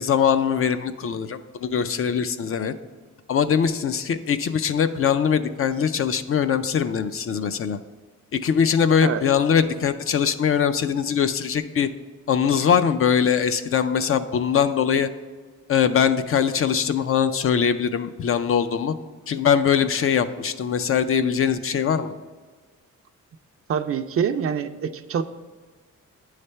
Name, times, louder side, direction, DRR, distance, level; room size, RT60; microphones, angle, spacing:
voice 1, 0.0-2.7 3.3-7.8 8.3-11.9 12.3-15.1 15.7-18.9 19.3-22.1, left 7 dB, 45° left, 10 dB, 0.4 m, -22 dB
voice 2, 23.7-25.2, right 7 dB, 45° right, 9 dB, 0.4 m, -25 dB
9.7 x 3.3 x 5.5 m, 1.4 s
cardioid pair, 120°, 31 cm